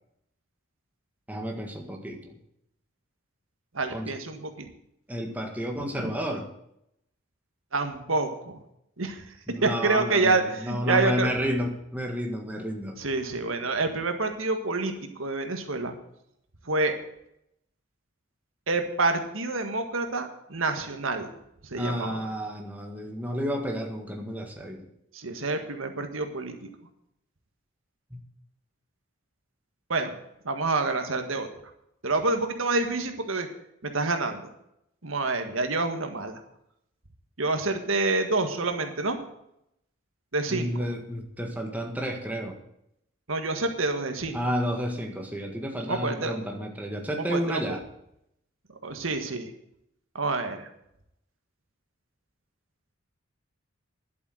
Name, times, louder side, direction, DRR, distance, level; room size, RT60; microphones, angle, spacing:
voice 1, 1.3-2.4 3.9-4.1 5.1-6.5 9.5-13.0 21.8-24.9 28.1-28.2 40.5-42.6 44.3-47.8, equal, 10° right, 2 dB, 1.7 m, -31 dB
voice 2, 3.7-4.7 5.9-6.1 7.7-8.6 9.0-9.2 9.6-11.3 13.0-14.9 15.2-15.9 16.6-16.9 18.7-21.3 21.7-22.2 25.1-26.7 29.9-30.2 30.4-31.5 32.0-33.5 33.8-34.4 35.0-36.4 37.4-39.2 40.3-40.7 43.3-44.4 45.9-46.3 47.3-47.6 48.8-49.5 50.1-50.7, right 3 dB, 80° right, 6 dB, 1.7 m, -27 dB
11.5 x 8.3 x 7.8 m, 0.77 s
head